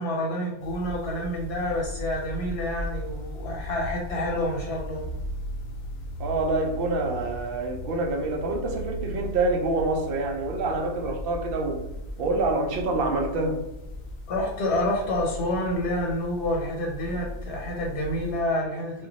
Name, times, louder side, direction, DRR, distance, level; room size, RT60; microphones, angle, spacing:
voice 1, 0.0-5.1 14.3-19.1, left 1 dB, 90° left, 1.0 m, -28 dB
sound 1, 0.6-18.4, equal, 65° left, 0.7 m, -37 dB
voice 2, 6.2-11.8 12.2-13.6, right 2 dB, 65° right, 0.7 m, -26 dB
2.2 x 2.1 x 3.9 m
omnidirectional pair, 1.1 m